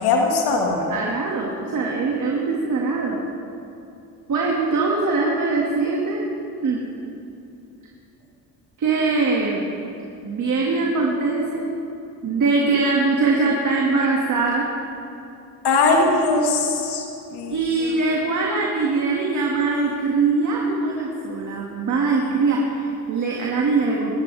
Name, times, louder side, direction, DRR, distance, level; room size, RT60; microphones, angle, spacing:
voice 1, 0.0-0.9 15.6-17.0 17.3-17.9, left 3 dB, 80° left, 0 dB, 2.2 m, -20 dB
voice 2, 0.9-3.2 4.3-6.2 6.6-6.8 8.8-9.6 10.2-11.7 12.2-14.7 17.5-24.1, right 3 dB, 50° right, -3 dB, 2.3 m, -22 dB
22.5 x 13.0 x 3.6 m, 2.7 s
cardioid pair, 90°, 38 cm